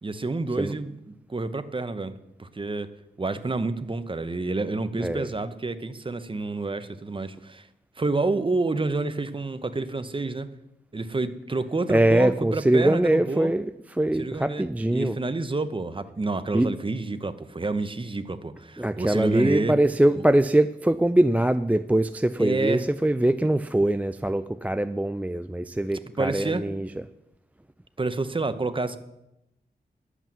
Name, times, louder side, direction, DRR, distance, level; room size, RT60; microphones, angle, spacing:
voice 1, 0.0-2.9 3.2-7.7 8.0-10.5 10.9-13.5 14.2-19.8 20.1-20.3 22.4-22.8 26.2-26.6 28.0-29.0, right 3 dB, 30° right, 11 dB, 0.9 m, -29 dB
voice 2, 11.9-15.2 16.5-16.7 18.8-26.9, right 1 dB, 10° right, 11 dB, 0.3 m, -23 dB
11.0 x 8.2 x 7.5 m, 0.87 s
wide cardioid pair, 80°, 17 cm